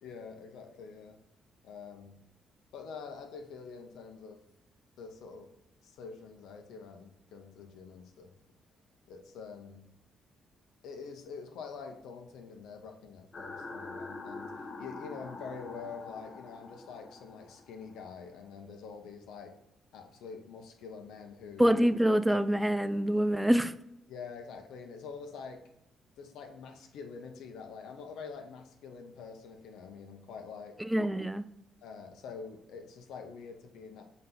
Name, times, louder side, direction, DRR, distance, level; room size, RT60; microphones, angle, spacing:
voice 1, 0.0-1.2 1.6-2.2 2.7-4.4 5.0-5.5 5.8-8.4 9.1-9.9 10.8-19.6 19.9-21.7 24.1-25.7 26.2-30.9 31.8-34.0, left 5 dB, 85° left, 1.0 m, -46 dB
sound 1, 13.3-18.5, left 3 dB, 40° left, 1.0 m, -45 dB
voice 2, 21.6-23.7 30.8-31.4, equal, 5° right, 0.4 m, -26 dB
6.0 x 4.2 x 3.8 m
cardioid pair, 90°, 0 cm